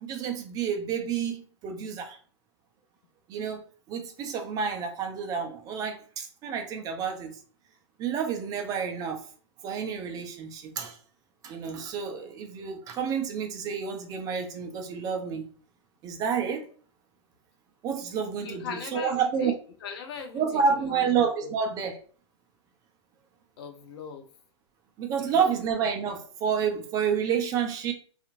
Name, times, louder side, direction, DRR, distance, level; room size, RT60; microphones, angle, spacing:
voice 1, 0.0-2.2 3.3-3.6 3.9-7.4 8.0-9.3 9.6-11.0 11.4-15.5 16.0-16.7 17.8-19.5 20.3-22.0 25.0-27.9, right 6 dB, 25° right, 0.5 m, -29 dB
voice 2, 18.4-19.5 19.8-21.1 21.3-21.5 23.6-24.3 25.3-25.6, left 6 dB, 55° left, 0.6 m, -39 dB
2.8 x 2.4 x 2.5 m
hypercardioid pair, 120°, 15 cm